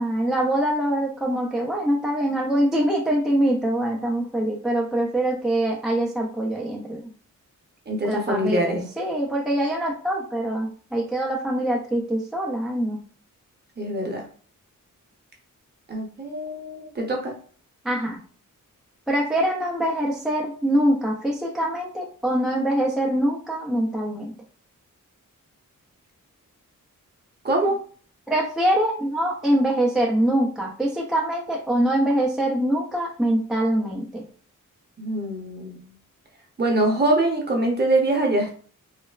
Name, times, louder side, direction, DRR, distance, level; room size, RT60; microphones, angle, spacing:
voice 1, 0.0-7.1 8.0-13.0 17.8-18.2 19.1-24.3 28.3-34.2, right 1 dB, ahead, -3 dB, 0.3 m, -24 dB
voice 2, 7.9-8.9 13.8-14.3 15.9-17.3 27.4-27.8 35.0-35.9 36.6-38.5, right 1 dB, 30° right, 1 dB, 0.6 m, -24 dB
3.1 x 2.0 x 2.2 m, 0.43 s
wide cardioid pair, 150°, 32 cm